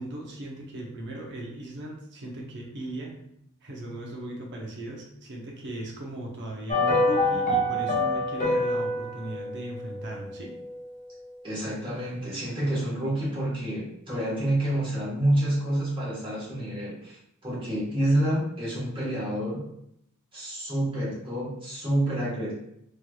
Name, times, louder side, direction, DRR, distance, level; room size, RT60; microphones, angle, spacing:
voice 1, 0.0-3.1 3.6-10.5, right 1 dB, 55° right, -1 dB, 0.8 m, -37 dB
sound 1, 6.7-11.0 11.2-11.3, left 1 dB, 35° left, 0.7 m, -27 dB
voice 2, 11.4-17.2 17.4-19.6 20.3-22.5, right 1 dB, 25° right, -7 dB, 1.3 m, -28 dB
3.2 x 2.9 x 2.3 m, 0.74 s
head